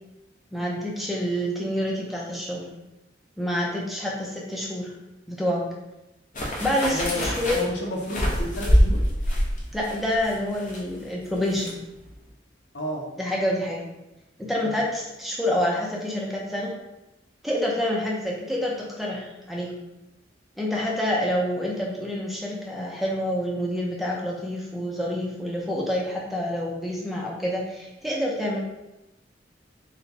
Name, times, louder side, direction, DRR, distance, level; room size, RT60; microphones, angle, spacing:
voice 1, 0.5-2.7 3.4-4.9 5.3-5.7 6.6-7.6 9.7-11.8 13.2-13.8 14.4-16.7 17.4-19.7 20.6-28.6, equal, ahead, -3 dB, 0.6 m, -27 dB
sound 1, 6.3-11.7 12.0-12.1, equal, 45° left, 0.8 m, -25 dB
voice 2, 6.9-9.0 12.7-13.1 14.6-14.8, left 1 dB, 75° left, -1 dB, 0.9 m, -31 dB
4.1 x 2.3 x 4.1 m, 0.95 s
head